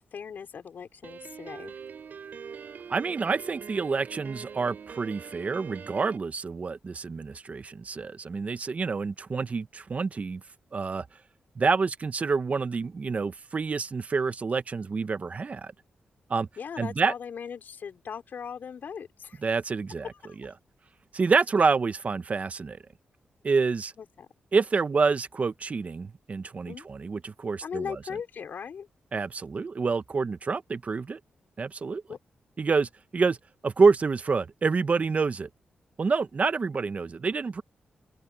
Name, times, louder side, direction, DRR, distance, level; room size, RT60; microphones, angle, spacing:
voice 1, 0.0-1.8 16.6-19.4 20.2-20.4 24.0-24.3 26.7-26.9 27.6-28.9 32.1-32.2, left 7 dB, 65° left, 5.3 m, -39 dB
Piano, 1.0-6.2, right 6 dB, 65° right, 6.6 m, -43 dB
voice 2, 2.9-10.4 10.7-11.1 11.6-15.7 16.3-16.5 16.8-17.1 19.4-20.1 20.4-20.5 21.1-22.8 23.4-23.9 24.5-28.0 29.1-31.2 31.6-32.0 32.6-33.4 33.6-35.5 36.0-37.6, right 4 dB, 45° right, 0.9 m, -27 dB
open air
cardioid pair, 70°, 3 cm